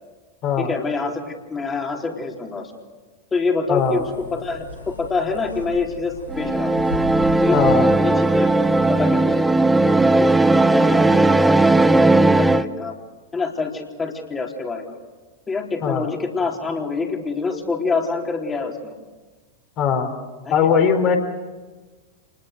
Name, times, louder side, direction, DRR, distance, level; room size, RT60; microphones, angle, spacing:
voice 1, 0.6-2.7 3.3-6.7 7.4-7.6 8.0-8.5 8.9-9.5 9.8-10.3 10.7-11.5 11.9-12.9 13.3-15.0 15.5-18.9 20.4-20.5, left 4 dB, 15° left, 1 dB, 3.8 m, -26 dB
sound 1, 3.7-9.4, left 2 dB, 85° left, 6.2 m, -36 dB
voice 2, 3.7-4.0 7.5-7.9 15.8-16.1 19.8-20.1 20.5-21.2, left 7 dB, 35° left, 4 dB, 4.3 m, -19 dB
sound 2, 6.3-12.6, right 2 dB, 5° right, 0.8 m, -17 dB
29.0 x 20.5 x 6.8 m, 1.3 s
figure-of-eight pair, 90°, 0 cm